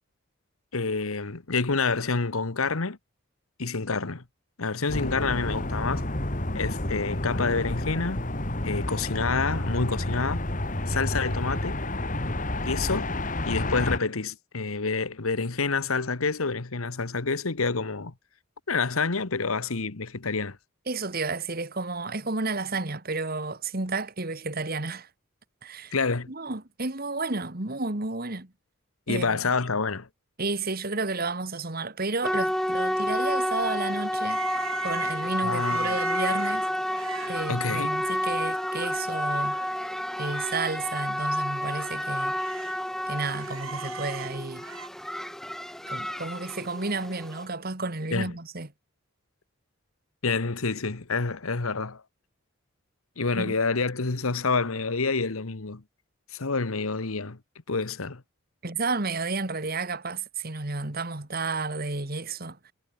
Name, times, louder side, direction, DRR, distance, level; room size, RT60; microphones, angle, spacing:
voice 1, 0.7-3.0 3.6-4.2 4.6-6.0 6.5-8.2 8.6-10.4 10.9-11.8 12.6-13.1 13.5-18.1 18.7-20.6 25.9-26.3 29.1-30.1 35.4-36.0 37.5-37.9 48.1-48.3 50.2-52.0 53.2-55.8 56.3-57.4 57.7-58.2, left 4 dB, 90° left, 1.3 m, -28 dB
sound 1, 4.9-14.0, left 1 dB, 40° left, 2.6 m, -30 dB
voice 2, 20.9-25.1 25.6-25.9 26.3-28.5 29.1-29.4 30.4-34.4 34.8-36.7 37.3-39.6 40.2-42.4 43.1-44.7 45.9-48.7 53.3-53.5 58.6-62.7, right 3 dB, 45° right, 1.9 m, -31 dB
sound 2, 32.2-47.4, equal, ahead, 0.8 m, -30 dB
sound 3, 34.3-38.1 38.5-38.7 39.0-40.5 40.8-40.9 41.5-42.8 43.1-44.9, right 7 dB, 80° right, 4.6 m, -41 dB
head